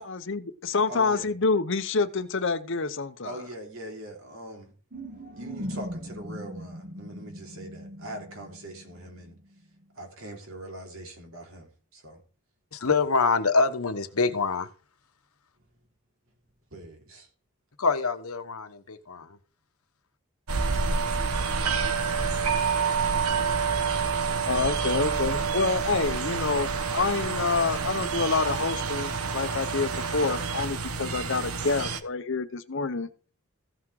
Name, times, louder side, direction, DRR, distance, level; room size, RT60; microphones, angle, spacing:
voice 1, 0.0-3.3 24.5-33.1, left 4 dB, 60° left, 0.9 m, -27 dB
voice 2, 0.9-1.3 3.2-4.7 5.3-9.4 9.9-12.2 12.8-12.9 16.7-17.3, right 1 dB, 70° right, 3.3 m, -42 dB
sound 1, 4.9-9.5, equal, 40° right, 1.5 m, -39 dB
voice 3, 12.7-14.7 17.8-19.4, left 4 dB, 85° left, 1.2 m, -25 dB
sound 2, 20.5-32.0, right 5 dB, 90° right, 1.2 m, -28 dB
15.0 x 6.0 x 4.8 m
head